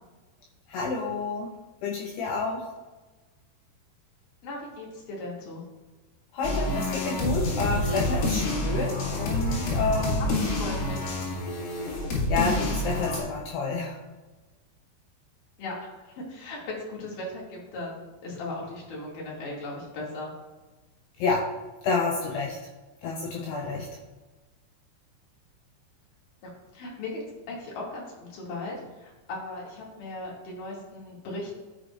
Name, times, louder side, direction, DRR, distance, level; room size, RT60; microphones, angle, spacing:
voice 1, 0.7-1.5 1.8-2.6 6.3-10.3 12.3-14.0 21.2-21.4 21.8-22.6 23.0-23.9, left 4 dB, 85° left, -1 dB, 2.3 m, -29 dB
voice 2, 4.4-5.6 10.2-11.1 15.6-20.3 26.4-31.5, left 2 dB, 50° left, -4 dB, 3.2 m, -38 dB
sound 1, 6.4-13.2, left 1 dB, 70° left, 4.3 m, -28 dB
13.0 x 6.8 x 2.5 m, 1.2 s
omnidirectional pair, 5.9 m